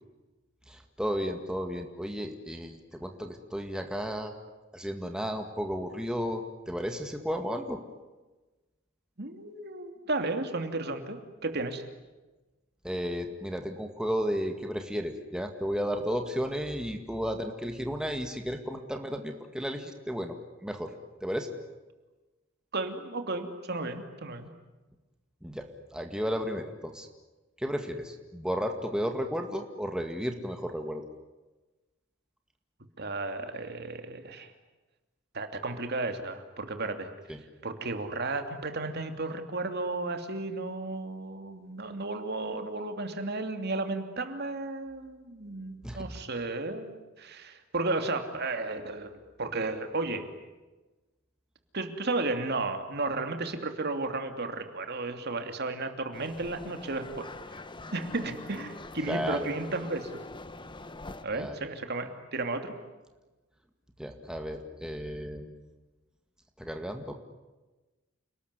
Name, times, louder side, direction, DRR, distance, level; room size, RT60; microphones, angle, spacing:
voice 1, 0.7-4.3 4.7-7.8 12.8-20.4 20.6-20.9 21.2-21.5 25.4-25.6 25.9-27.1 27.6-31.0 37.3-37.4 45.8-46.2 59.1-59.4 61.3-61.6 64.0-65.5 66.6-67.1, equal, 5° right, 4 dB, 2.0 m, -33 dB
voice 2, 9.2-11.8 22.7-24.5 33.0-34.5 35.3-37.1 37.6-50.3 51.7-57.3 57.9-60.1 61.2-62.7, right 2 dB, 55° right, 7 dB, 2.8 m, -33 dB
sound 1, 56.1-61.2, left 2 dB, 25° left, 1.2 m, -44 dB
29.5 x 20.0 x 9.8 m, 1.2 s
head